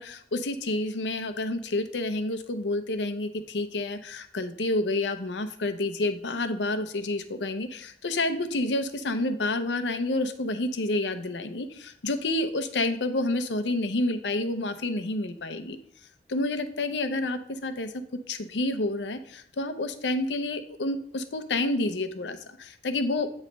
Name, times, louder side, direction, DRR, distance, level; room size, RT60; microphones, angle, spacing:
voice 1, 0.0-15.8 16.3-17.9 18.3-23.3, left 2 dB, 85° left, 9 dB, 0.7 m, -29 dB
8.9 x 3.2 x 5.2 m, 0.68 s
head